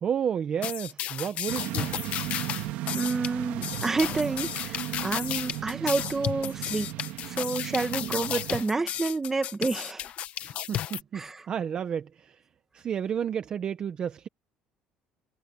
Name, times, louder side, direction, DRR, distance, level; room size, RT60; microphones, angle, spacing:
voice 1, 0.0-1.9 10.4-12.4 12.7-14.3, right 8 dB, 35° right, 0.8 m, -31 dB
sound 1, 0.6-11.0, left 12 dB, 50° left, 1.0 m, -33 dB
sound 2, 1.5-8.6, right 15 dB, 70° right, 2.5 m, -36 dB
voice 2, 2.9-6.9 7.3-10.1 11.1-11.4, right 3 dB, 15° right, 1.6 m, -29 dB
cardioid pair, 160°, 3 cm